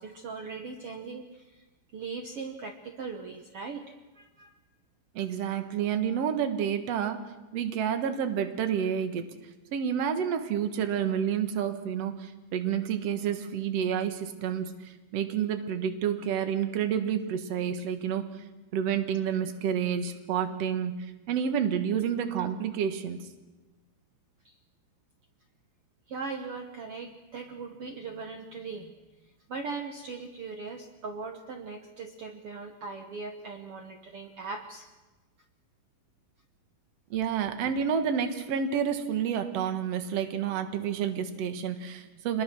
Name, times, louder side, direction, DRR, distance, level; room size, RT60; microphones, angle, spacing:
voice 1, 0.0-1.6 1.9-4.5 24.4-24.6 26.1-28.9 29.5-34.9, right 4 dB, 85° right, 5 dB, 1.2 m, -39 dB
voice 2, 5.1-7.2 7.5-9.3 9.7-18.3 18.7-23.2 37.1-42.4, right 8 dB, 55° right, 8 dB, 2.1 m, -29 dB
26.0 x 21.0 x 6.2 m, 1.1 s
omnidirectional pair, 4.5 m